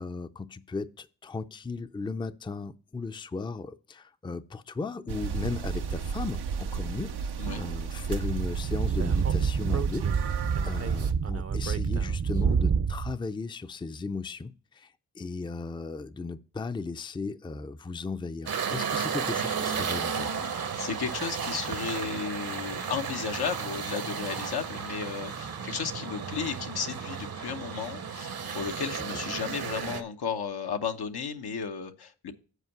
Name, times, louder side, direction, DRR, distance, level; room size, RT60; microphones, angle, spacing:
voice 1, 0.0-7.1 7.6-20.5 29.1-29.2, left 4 dB, 15° left, 0.4 m, -36 dB
sound 1, 5.1-11.1, right 6 dB, 90° right, 0.7 m, -33 dB
Speech / Wind, 8.2-13.1, right 6 dB, 40° right, 0.6 m, -27 dB
sound 2, 18.5-30.0, right 6 dB, 65° right, 0.9 m, -33 dB
voice 2, 20.8-32.3, left 6 dB, 75° left, 0.9 m, -34 dB
8.2 x 4.5 x 5.9 m
cardioid pair, 45°, 39 cm